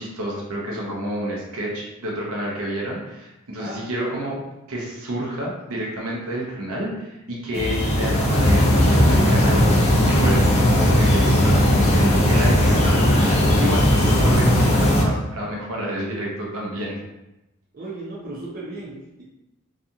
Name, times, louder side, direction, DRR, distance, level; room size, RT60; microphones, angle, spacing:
voice 1, 0.0-4.4 4.7-9.6 10.1-17.0, right 1 dB, 80° right, -3 dB, 0.7 m, -29 dB
voice 2, 3.6-4.3 14.0-14.6 17.7-19.2, right 2 dB, 45° right, -5 dB, 0.6 m, -36 dB
sound 1, 7.5-15.0, equal, 30° left, 0.5 m, -17 dB
2.8 x 2.4 x 2.4 m, 0.96 s
head